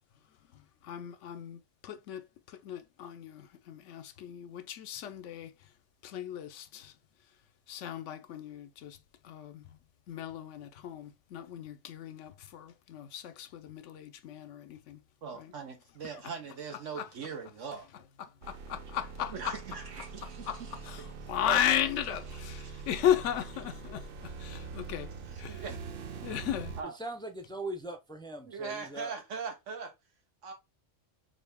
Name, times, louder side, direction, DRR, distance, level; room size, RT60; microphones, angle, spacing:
voice 1, 0.9-1.6 1.9-2.2 2.7-3.4 3.7-5.5 6.1-6.5 7.7-8.9 9.3-9.5 10.1-12.3 12.9-13.2 13.7-14.6 15.4-15.5 17.0-17.1 18.7-19.6 20.5-20.6 21.3-22.2 22.9-24.0 24.7-25.1 26.2-26.7, left 10 dB, 85° left, 0.9 m, -33 dB
voice 2, 15.2-17.9 19.3-20.8 21.4-21.6 22.3-22.9 25.3-26.0 26.8-26.9 28.4-29.9 30.4-30.5, right 5 dB, 90° right, 1.4 m, -41 dB
sound 1, 18.4-26.8, right 5 dB, 60° right, 0.7 m, -43 dB
voice 3, 26.9-29.1, right 1 dB, 5° left, 0.4 m, -40 dB
4.0 x 2.7 x 3.4 m
omnidirectional pair, 1.2 m